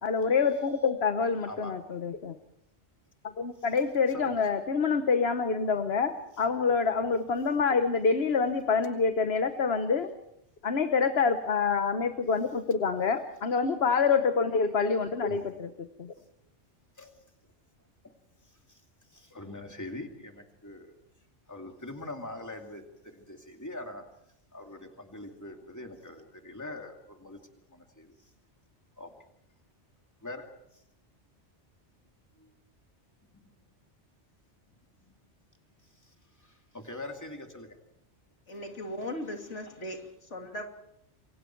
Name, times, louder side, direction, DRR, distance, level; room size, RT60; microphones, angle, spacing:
voice 1, 0.0-2.3 3.4-10.1 10.6-16.1, left 5 dB, 60° left, 8 dB, 1.4 m, -27 dB
voice 2, 4.1-4.6 15.3-15.6 17.0-17.1 18.0-18.1 19.1-20.9 21.5-24.0 24.5-27.4 27.7-28.1 29.0-29.1 30.2-30.4 33.3-33.4 36.7-37.7, left 2 dB, 15° left, 3 dB, 2.5 m, -43 dB
voice 3, 38.5-40.7, left 1 dB, 90° left, 3 dB, 3.2 m, -38 dB
28.0 x 23.5 x 4.6 m, 0.75 s
omnidirectional pair, 1.2 m